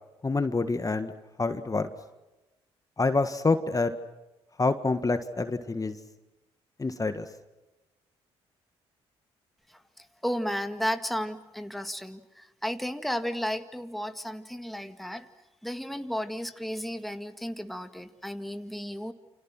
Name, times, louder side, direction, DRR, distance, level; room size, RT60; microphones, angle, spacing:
voice 1, 0.2-1.1 1.4-1.9 3.0-3.9 4.6-5.9 6.8-7.3, left 3 dB, 25° left, 9 dB, 1.7 m, -27 dB
voice 2, 9.7-15.3 15.6-19.1, equal, ahead, 8 dB, 2.0 m, -33 dB
29.5 x 26.5 x 6.2 m, 1.0 s
hypercardioid pair, 50°, 13 cm